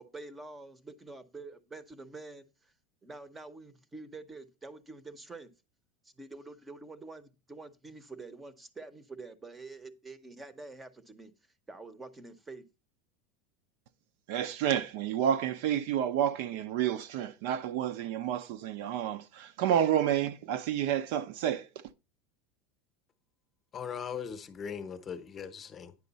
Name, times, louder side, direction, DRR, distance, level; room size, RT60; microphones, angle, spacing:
voice 1, 0.0-2.7 3.0-5.5 6.0-11.3 11.7-12.7, right 3 dB, 10° right, 0.8 m, -47 dB
voice 2, 14.3-21.7, right 10 dB, 60° right, 0.6 m, -30 dB
voice 3, 23.7-26.0, left 7 dB, 20° left, 0.8 m, -39 dB
9.6 x 6.4 x 4.1 m
supercardioid pair, 170°, 0 cm